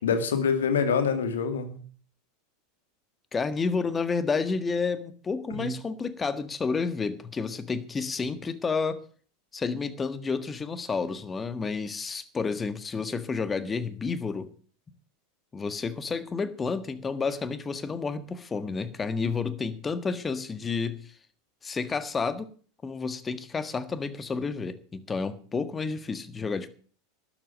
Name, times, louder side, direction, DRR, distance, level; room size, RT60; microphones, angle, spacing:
voice 1, 0.0-1.8 5.5-5.7, left 6 dB, 70° left, 9 dB, 2.3 m, -26 dB
voice 2, 3.3-9.0 9.5-14.5 15.5-21.1 21.6-22.5 22.8-26.7, left 4 dB, 20° left, 12 dB, 1.6 m, -30 dB
12.5 x 11.0 x 6.4 m, 0.43 s
figure-of-eight pair, 80°, 0 cm